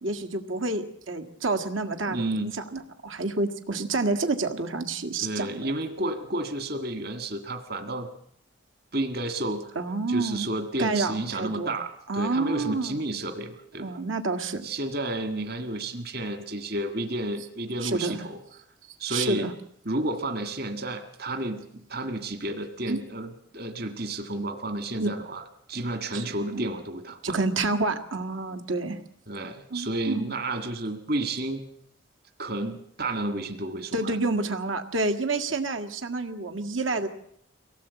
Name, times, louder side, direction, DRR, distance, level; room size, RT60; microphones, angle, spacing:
voice 1, 0.0-2.3 2.7-5.7 9.8-10.5 10.8-11.7 12.1-12.9 13.8-14.7 17.8-18.3 19.1-19.5 22.9-23.0 25.0-25.1 26.1-26.7 27.2-29.0 29.7-30.3 33.9-37.1, right 3 dB, 80° right, 6 dB, 1.9 m, -28 dB
voice 2, 2.1-2.5 5.2-8.1 8.9-9.8 10.1-14.0 14.6-18.4 19.0-19.5 19.9-27.4 29.3-31.6 32.4-34.2, right 1 dB, 50° right, 7 dB, 1.8 m, -31 dB
23.5 x 17.5 x 8.3 m, 0.71 s
head